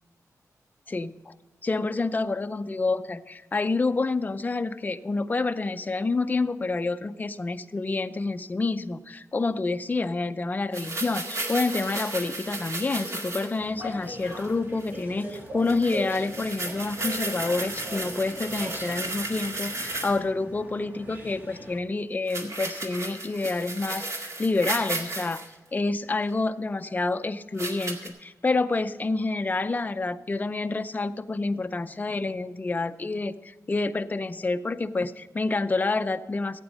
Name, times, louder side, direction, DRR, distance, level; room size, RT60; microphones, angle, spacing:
voice 1, 0.9-1.3 1.6-25.4 25.7-36.6, left 3 dB, 30° left, 10 dB, 0.5 m, -28 dB
sound 1, 10.7-13.6 14.1-14.5 14.8-15.0 15.3-15.4 15.7-20.2 22.3-25.5 26.3-26.4 27.6-28.1, right 2 dB, 55° right, 2.0 m, -34 dB
sound 2, 13.6-21.8, equal, 30° right, 2.5 m, -40 dB
15.5 x 8.8 x 4.1 m, 1.3 s
wide cardioid pair, 130°, 6 cm